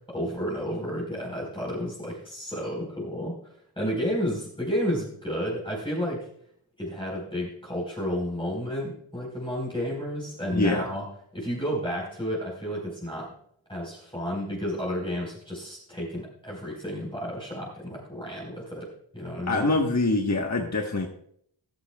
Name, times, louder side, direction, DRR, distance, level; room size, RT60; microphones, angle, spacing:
voice 1, 0.1-3.3 3.8-6.3 6.8-11.0 11.3-13.3 13.7-19.7, equal, 10° left, -4 dB, 4.4 m, -31 dB
voice 2, 10.5-10.9 19.5-21.1, left 2 dB, 35° left, 1 dB, 1.4 m, -24 dB
14.0 x 13.0 x 2.3 m, 0.65 s
wide cardioid pair, 70°, 48 cm